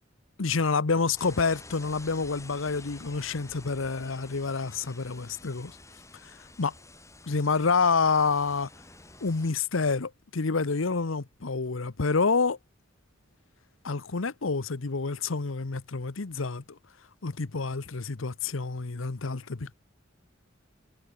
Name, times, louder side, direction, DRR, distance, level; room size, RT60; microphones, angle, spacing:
voice 1, 0.4-5.8 6.2-6.7 7.3-8.7 9.2-12.6 13.8-16.6 17.2-19.7, left 4 dB, 90° left, 0.9 m, -28 dB
sound 1, 1.2-9.5, left 2 dB, 15° left, 7.6 m, -49 dB
head